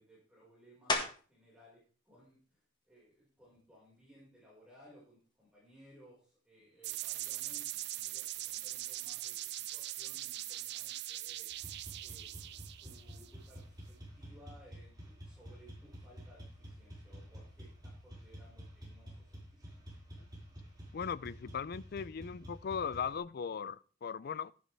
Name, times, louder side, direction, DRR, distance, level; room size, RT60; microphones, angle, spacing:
voice 1, 0.0-2.6 2.9-11.7 12.0-19.8, equal, 5° right, 5.0 m, -61 dB
sound 1, 0.9-1.5 2.0-6.5 7.0-12.2 12.4-18.1, left 2 dB, 25° left, 1.7 m, -45 dB
sound 2, 6.8-13.5, right 15 dB, 60° right, 0.5 m, -41 dB
sound 3, 11.5-23.2, equal, 20° right, 5.1 m, -50 dB
voice 2, 20.9-24.5, left 6 dB, 50° left, 0.4 m, -38 dB
12.0 x 11.0 x 3.4 m
head